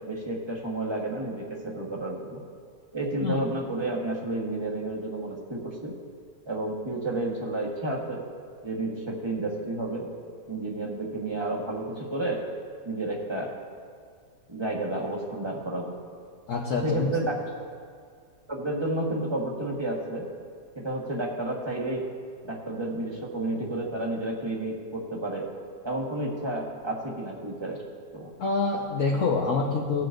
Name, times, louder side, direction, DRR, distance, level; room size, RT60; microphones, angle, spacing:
voice 1, 0.0-2.4 2.9-5.9 6.5-8.2 8.6-10.1 10.5-12.4 12.8-13.5 14.5-16.0 16.8-17.4 18.5-20.3 20.7-22.0 22.4-25.5 25.8-27.8 28.1-28.3, right 2 dB, 15° right, -2 dB, 1.4 m, -31 dB
voice 2, 16.5-17.1 28.4-30.1, left 4 dB, 55° left, -2 dB, 1.3 m, -26 dB
19.5 x 7.7 x 2.6 m, 2.1 s
omnidirectional pair, 1.7 m